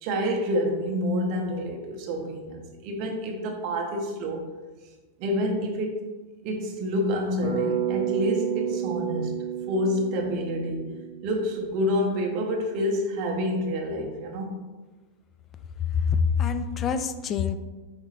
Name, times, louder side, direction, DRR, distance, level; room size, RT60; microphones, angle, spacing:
voice 1, 0.0-4.5 5.2-6.0 6.4-10.9 11.2-14.6, equal, 45° right, 1 dB, 0.6 m, -28 dB
Bass guitar, 7.4-11.5, right 9 dB, 70° left, 1.5 m, -30 dB
voice 2, 15.8-17.6, left 6 dB, 30° left, 10 dB, 0.3 m, -25 dB
4.9 x 3.6 x 3.0 m, 1.3 s
figure-of-eight pair, 90°, 0 cm